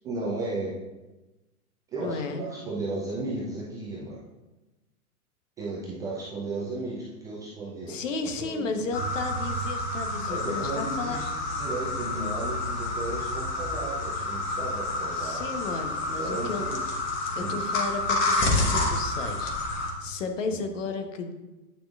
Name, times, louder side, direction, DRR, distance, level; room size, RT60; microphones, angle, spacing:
voice 1, 0.0-0.7 1.9-4.2 5.6-8.0 8.4-8.8 10.3-15.5 16.2-16.8 17.4-17.6 20.5-20.6, right 2 dB, 10° right, -5 dB, 0.3 m, -34 dB
voice 2, 2.0-2.5 7.9-11.2 15.1-16.6 17.4-21.3, left 4 dB, 60° left, 6 dB, 1.1 m, -34 dB
sound 1, 8.9-19.9, left 2 dB, 30° left, 1.4 m, -29 dB
8.8 x 5.9 x 2.4 m, 1.1 s
figure-of-eight pair, 105°, 43 cm